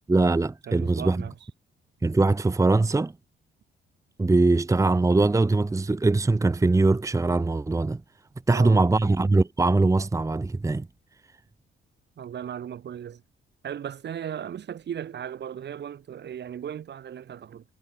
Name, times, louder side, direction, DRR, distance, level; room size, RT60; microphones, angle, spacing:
voice 1, 0.1-1.2 2.0-3.1 4.2-8.0 8.5-10.9, right 3 dB, 15° right, 1.1 m, -22 dB
voice 2, 0.7-1.4 8.5-8.8 12.2-13.2 13.6-17.6, right 9 dB, 60° right, 4.8 m, -36 dB
cardioid pair, 90°, 20 cm